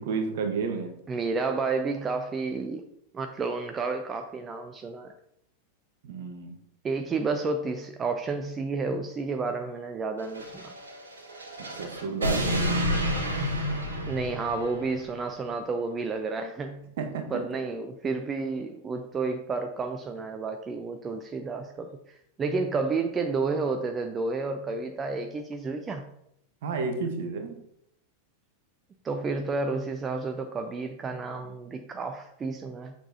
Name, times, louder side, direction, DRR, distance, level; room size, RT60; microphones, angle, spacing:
voice 1, 0.0-1.0 6.0-6.5 11.7-12.5 17.0-17.4 26.6-27.6, right 4 dB, 55° right, 5 dB, 1.1 m, -31 dB
voice 2, 1.1-2.8 3.1-5.1 6.8-10.7 14.1-16.9 17.3-26.1 29.0-32.9, right 4 dB, 20° right, 5 dB, 0.5 m, -31 dB
sound 1, 10.2-15.0, equal, 70° right, 1.7 m, -30 dB
6.7 x 5.9 x 2.7 m, 0.76 s
figure-of-eight pair, 90°, 0 cm